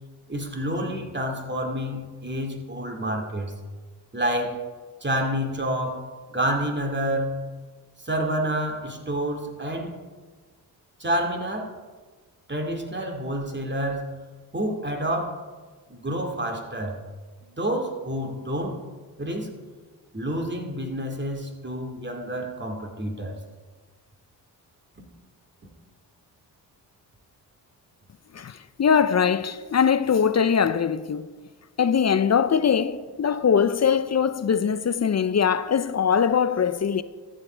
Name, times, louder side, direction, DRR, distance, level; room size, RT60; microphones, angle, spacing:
voice 1, 0.3-3.5 4.1-4.7 5.0-7.3 8.0-10.0 11.0-11.8 12.5-14.1 14.5-15.4 15.9-17.0 17.4-18.9 19.2-19.5 20.1-23.4, right 1 dB, 25° right, 2.5 m, -28 dB
voice 2, 28.3-31.3 31.8-37.0, left 7 dB, 40° left, 0.6 m, -22 dB
13.5 x 8.3 x 4.5 m
cardioid pair, 55°, 40 cm